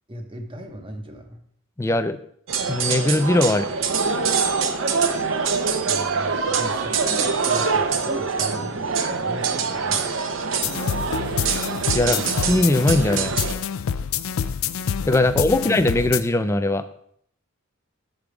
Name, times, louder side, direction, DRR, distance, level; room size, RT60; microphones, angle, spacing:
voice 1, 0.1-1.4 5.9-10.2 15.2-15.7, right 1 dB, 25° right, 6 dB, 0.8 m, -37 dB
voice 2, 1.8-2.2 2.7-3.8 11.9-13.3 15.1-16.8, left 2 dB, 15° left, 10 dB, 0.4 m, -20 dB
sound 1, 2.5-13.5, right 5 dB, 65° right, 0.7 m, -24 dB
sound 2, 10.6-16.2, left 7 dB, 90° left, 0.4 m, -27 dB
7.2 x 5.2 x 4.7 m, 0.64 s
head